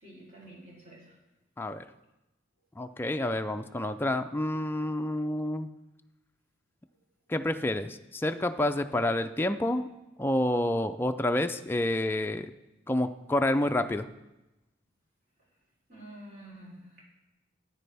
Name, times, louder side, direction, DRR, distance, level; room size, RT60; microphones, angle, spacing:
voice 1, 0.0-1.1 15.9-17.0, right 1 dB, 45° right, -4 dB, 3.7 m, -49 dB
voice 2, 2.8-5.7 7.3-9.9 10.2-12.5 12.9-14.1, left 1 dB, 10° left, 7 dB, 0.3 m, -28 dB
13.5 x 9.2 x 3.4 m, 0.98 s
head